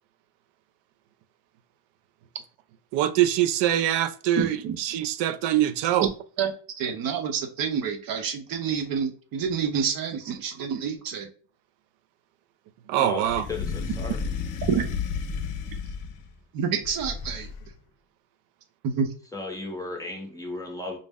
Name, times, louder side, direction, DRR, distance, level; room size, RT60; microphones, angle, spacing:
voice 1, 2.9-6.1 12.9-13.4, right 12 dB, 85° right, 0.6 m, -24 dB
voice 2, 4.4-4.8 6.0-6.1 6.4-11.3 14.7-14.9 16.5-17.5 18.8-19.1, right 7 dB, 55° right, 0.8 m, -28 dB
voice 3, 13.0-14.4 19.3-21.0, left 2 dB, 10° left, 0.6 m, -35 dB
sound 1, 13.2-16.3 16.8-17.7, left 5 dB, 50° left, 0.6 m, -32 dB
5.3 x 2.0 x 3.5 m
cardioid pair, 160°, 41 cm